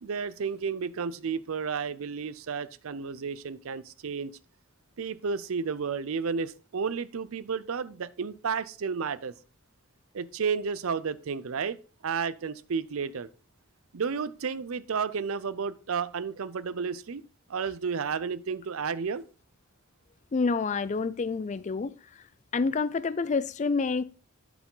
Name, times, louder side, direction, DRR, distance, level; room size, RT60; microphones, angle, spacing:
voice 1, 0.0-4.3 5.0-9.3 10.1-11.8 12.0-13.3 13.9-17.2 17.5-19.2, right 5 dB, 70° right, 0.5 m, -32 dB
voice 2, 20.3-21.9 22.5-24.0, left 4 dB, 35° left, 0.3 m, -28 dB
11.0 x 4.8 x 3.8 m
head